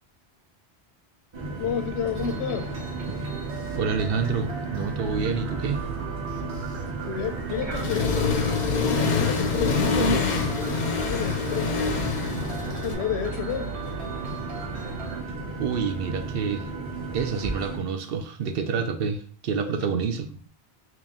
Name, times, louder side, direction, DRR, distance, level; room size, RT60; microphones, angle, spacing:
sound 1, 1.3-17.8, right 2 dB, 30° right, 0.7 m, -34 dB
voice 1, 1.6-2.7 7.0-8.1 8.7-12.0 12.7-13.8 19.7-19.9, left 8 dB, 85° left, 0.8 m, -31 dB
sound 2, 2.1-15.2, right 6 dB, 90° right, 1.0 m, -37 dB
voice 2, 3.8-5.9 15.6-16.7 17.1-20.5, right 6 dB, 65° right, 0.7 m, -28 dB
Accelerating revving vroom, 7.7-12.9, left 5 dB, 55° left, 0.6 m, -25 dB
3.0 x 3.0 x 3.6 m
omnidirectional pair, 1.1 m